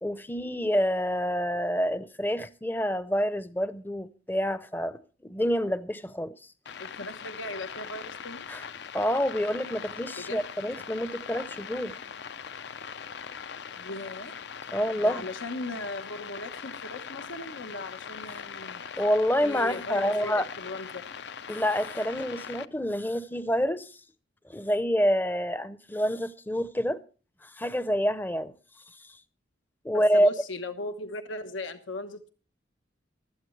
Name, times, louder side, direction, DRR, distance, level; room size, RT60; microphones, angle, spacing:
voice 1, 0.0-6.3 8.5-8.7 8.9-12.0 14.7-15.3 19.0-20.5 21.5-24.0 24.5-27.0 27.4-28.5 29.8-30.3, equal, 10° left, 0.6 m, -27 dB
sound 1, 6.6-22.6, left 7 dB, 60° left, 0.5 m, -41 dB
voice 2, 6.8-8.5 10.2-10.4 13.8-14.4 15.0-18.8 19.4-21.0 29.9-32.3, left 2 dB, 90° left, 1.2 m, -38 dB
16.0 x 12.5 x 3.2 m
head